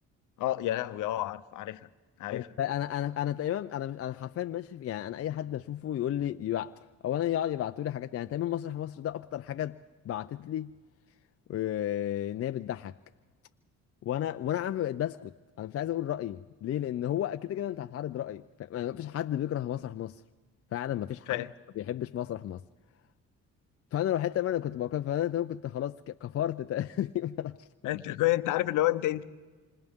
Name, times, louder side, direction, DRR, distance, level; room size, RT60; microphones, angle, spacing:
voice 1, 0.4-1.9 2.2-2.5 21.3-21.5 27.8-29.2, left 15 dB, 85° left, 0.8 m, -29 dB
voice 2, 2.3-6.8 7.0-9.8 10.0-10.7 11.5-12.9 14.0-20.2 20.7-21.5 21.8-22.6 23.9-27.7, left 11 dB, 50° left, 0.5 m, -32 dB
27.5 x 26.0 x 3.6 m
cardioid pair, 90°, 30 cm